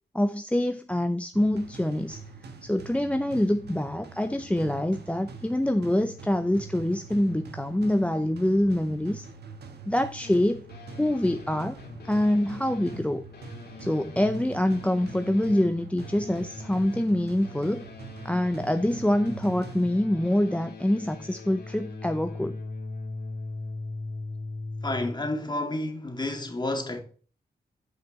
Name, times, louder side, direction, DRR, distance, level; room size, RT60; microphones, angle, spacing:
voice 1, 0.1-2.2 2.6-9.3 9.9-10.6 11.0-11.8 12.0-13.2 13.8-17.9 18.2-22.6, left 1 dB, 5° left, 0.6 m, -25 dB
sound 1, 1.3-20.3, right 4 dB, 80° right, 1.4 m, -44 dB
sound 2, 10.2-25.1, left 2 dB, 75° left, 2.9 m, -41 dB
voice 2, 24.8-27.0, left 2 dB, 25° left, 2.1 m, -30 dB
9.3 x 5.0 x 4.2 m
cardioid pair, 75°, 17 cm